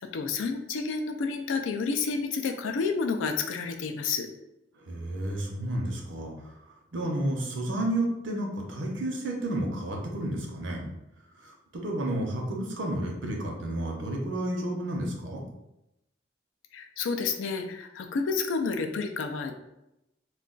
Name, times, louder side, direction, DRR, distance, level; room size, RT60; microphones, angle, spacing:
voice 1, 0.1-4.3 16.7-19.5, left 4 dB, 85° left, 5 dB, 0.4 m, -30 dB
voice 2, 4.8-6.6 6.9-10.9 11.4-15.4, right 1 dB, 80° right, 0 dB, 0.7 m, -31 dB
2.3 x 2.3 x 3.7 m, 0.89 s
head